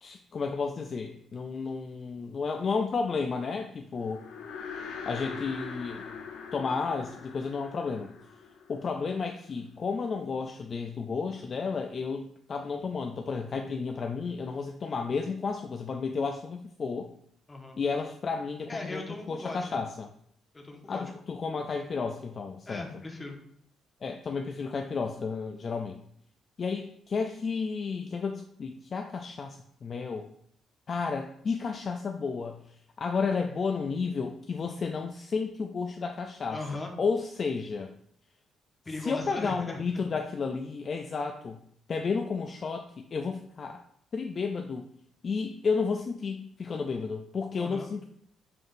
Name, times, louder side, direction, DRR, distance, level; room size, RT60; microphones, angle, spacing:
voice 1, 0.0-4.2 5.1-6.2 6.5-8.1 8.7-17.1 17.8-19.0 19.3-20.1 20.9-22.9 24.0-26.0 26.6-30.3 30.9-32.6 33.0-36.6 37.0-37.9 39.0-41.6 41.9-43.8 44.1-44.9 45.2-48.0, left 5 dB, 45° left, 4 dB, 0.4 m, -32 dB
sound 1, 4.0-9.5, left 6 dB, 90° left, 0.7 m, -42 dB
voice 2, 17.5-17.8 18.7-19.8 20.5-21.1 22.7-23.4 36.5-36.9 38.8-40.1 47.6-47.9, left 2 dB, 20° left, 1 dB, 1.0 m, -39 dB
5.7 x 3.6 x 2.6 m, 0.66 s
cardioid pair, 90°, 0 cm